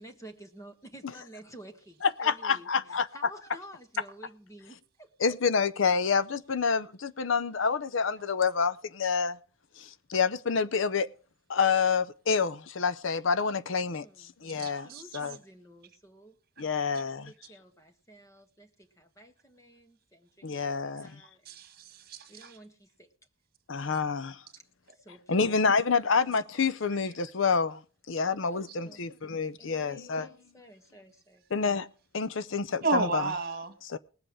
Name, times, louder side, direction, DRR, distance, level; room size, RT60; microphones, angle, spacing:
voice 1, 0.0-5.1 14.0-16.4 16.9-21.5 22.3-23.1 24.9-26.1 28.2-29.0 29.6-31.4, right 1 dB, 15° left, 1.4 m, -52 dB
voice 2, 2.0-3.1 5.2-9.4 9.8-11.1 11.5-14.0 14.4-14.9 15.1-15.4 16.6-17.3 20.4-21.2 23.7-24.4 25.3-27.8 28.1-30.3 31.5-31.9 32.1-33.2 33.9-34.0, left 5 dB, 65° left, 0.6 m, -28 dB
voice 3, 14.6-15.0 21.5-22.6 32.8-33.7, right 3 dB, 45° right, 1.8 m, -32 dB
19.5 x 7.8 x 4.8 m
head